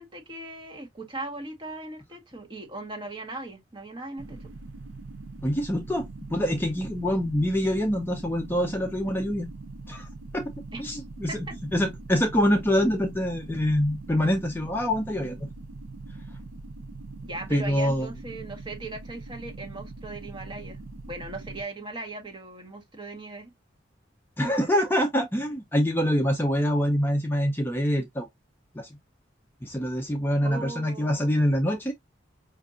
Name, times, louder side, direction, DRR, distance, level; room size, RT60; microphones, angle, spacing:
voice 1, 0.0-4.5 10.7-10.8 11.3-11.5 17.2-20.8 21.1-23.5 30.4-31.4, right 2 dB, 25° right, 1.0 m, -38 dB
sound 1, 4.2-21.6, right 3 dB, 85° right, 0.6 m, -42 dB
voice 2, 5.4-9.5 9.9-10.1 10.3-10.5 10.8-11.4 11.7-15.5 17.5-18.1 24.4-28.3 28.8-28.9 29.6-31.9, equal, 10° left, 0.5 m, -25 dB
5.1 x 2.5 x 2.5 m
head